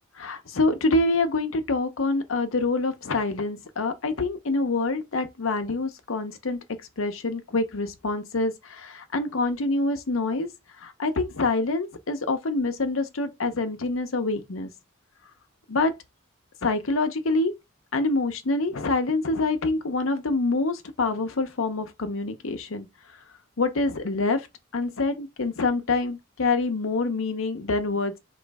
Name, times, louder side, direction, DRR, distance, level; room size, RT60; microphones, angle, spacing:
voice 1, 0.2-6.6 7.0-10.5 10.8-14.7 15.7-15.9 16.6-17.5 17.9-22.9 23.6-24.5 24.7-28.1, left 3 dB, 75° left, 0.8 m, -26 dB
4.1 x 3.1 x 3.4 m
head